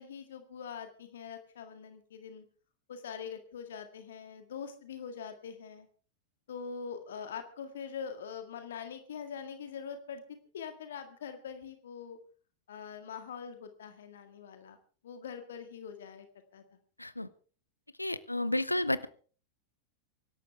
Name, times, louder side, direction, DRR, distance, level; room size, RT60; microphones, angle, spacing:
voice 1, 0.0-2.4 2.9-5.9 6.5-10.2 10.5-12.2 12.7-14.8 15.0-16.3 16.5-16.6, left 6 dB, 60° left, 7 dB, 1.9 m, -43 dB
voice 2, 18.0-19.1, left 1 dB, 85° left, 16 dB, 0.7 m, -31 dB
24.5 x 12.5 x 3.5 m, 0.40 s
figure-of-eight pair, 90°, 0 cm